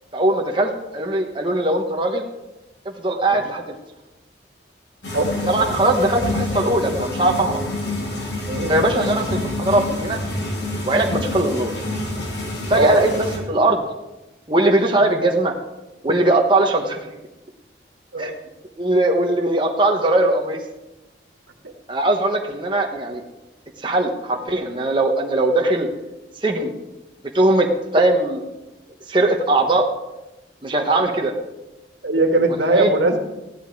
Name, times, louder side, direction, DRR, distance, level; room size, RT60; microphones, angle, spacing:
voice 1, 0.1-2.2 2.8-3.6 5.5-7.6 8.7-10.2 10.8-11.7 12.7-13.1 13.5-13.8 14.5-15.5 16.0-17.1 18.2-18.3 18.8-20.6 21.9-23.2 23.8-25.9 26.4-26.7 27.3-27.7 27.9-28.4 29.1-29.9 30.6-31.3 32.7-32.9, right 2 dB, 25° right, 1 dB, 1.1 m, -20 dB
sound 1, 5.0-13.4, left 1 dB, 70° left, 2.9 m, -27 dB
voice 2, 5.1-5.5 8.5-8.7 12.7-13.0 15.0-15.1 18.1-18.4 21.6-21.7 32.0-33.2, right 2 dB, 80° right, 4 dB, 1.8 m, -20 dB
15.0 x 11.0 x 4.7 m, 1.0 s
head